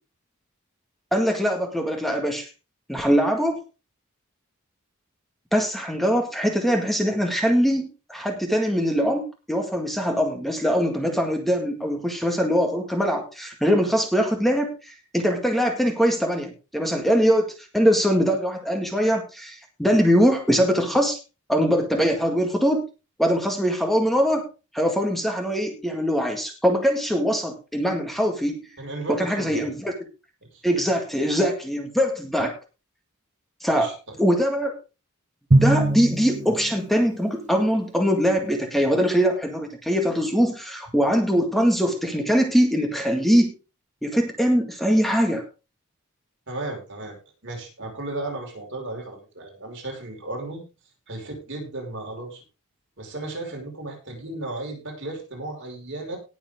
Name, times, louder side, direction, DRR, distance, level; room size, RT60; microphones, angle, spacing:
voice 1, 1.1-2.5 2.9-3.6 5.5-21.2 21.5-22.9 23.2-24.5 24.7-28.7 29.1-29.9 30.6-32.6 33.6-33.9 34.2-34.7 35.6-43.5 44.0-45.4, equal, ahead, 2 dB, 1.9 m, -22 dB
voice 2, 28.8-29.6 30.5-30.6 33.7-34.2 36.4-36.5 46.5-47.2 47.4-50.6 51.1-52.4 53.0-56.2, right 2 dB, 55° right, 1 dB, 5.5 m, -34 dB
Drum, 35.5-37.2, right 2 dB, 35° right, 0.7 m, -22 dB
19.0 x 7.2 x 3.7 m, 0.31 s
head